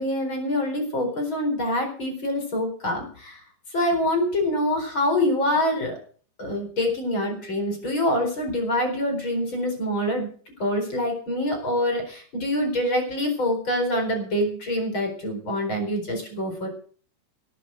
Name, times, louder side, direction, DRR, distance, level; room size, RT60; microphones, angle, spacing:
voice 1, 0.0-3.4 3.7-5.9 6.4-10.3 10.6-16.7, left 1 dB, 30° left, 5 dB, 4.6 m, -25 dB
17.5 x 7.8 x 7.7 m, 0.43 s
omnidirectional pair, 5.1 m